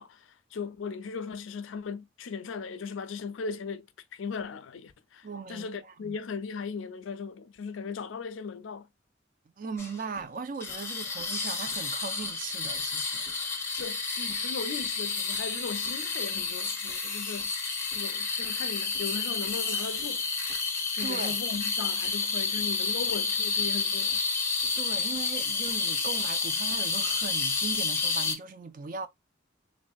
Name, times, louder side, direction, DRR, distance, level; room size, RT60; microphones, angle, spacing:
voice 1, 0.0-3.9 4.1-8.9 13.7-17.5 17.9-20.2 20.9-24.2, left 5 dB, 80° left, 0.4 m, -38 dB
voice 2, 5.2-6.2 9.6-13.3 21.0-21.4 24.8-29.1, right 5 dB, 45° right, 0.4 m, -38 dB
sound 1, 9.8-10.2 10.6-28.3, left 4 dB, 15° left, 0.7 m, -30 dB
3.1 x 2.7 x 2.2 m
head